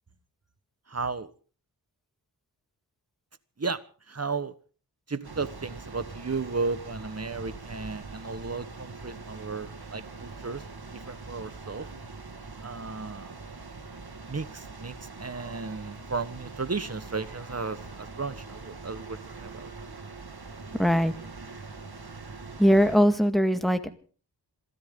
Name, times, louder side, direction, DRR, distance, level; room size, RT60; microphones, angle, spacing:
voice 1, 0.9-1.3 3.6-3.8 4.1-4.5 5.1-10.6 10.9-11.9 12.6-13.4 14.3-19.7, right 4 dB, 35° right, 13 dB, 1.3 m, -34 dB
sound 1, 5.2-23.0, right 3 dB, 60° right, 2.0 m, -43 dB
voice 2, 20.8-21.1 22.6-23.9, equal, ahead, 7 dB, 1.9 m, -21 dB
27.5 x 13.5 x 3.8 m, 0.41 s
cardioid pair, 45°, 42 cm